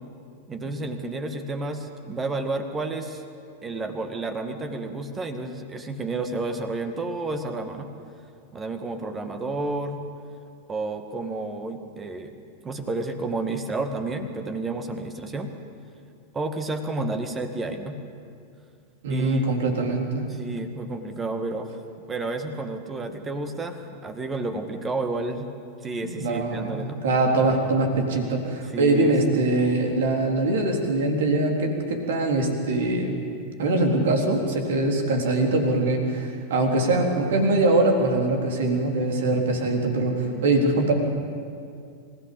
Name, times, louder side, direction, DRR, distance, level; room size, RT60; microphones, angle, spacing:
voice 1, 0.5-3.2 3.6-7.9 8.5-10.0 10.7-15.5 16.3-18.0 19.1-19.5 20.3-21.8 22.1-25.5 25.8-27.0 28.6-29.2 40.2-40.5, right 2 dB, 20° right, 7 dB, 2.1 m, -31 dB
voice 2, 19.0-20.2 26.0-33.2 33.6-40.9, right 2 dB, 60° right, 3 dB, 3.8 m, -23 dB
27.0 x 16.5 x 8.7 m, 2.4 s
figure-of-eight pair, 90°, 0 cm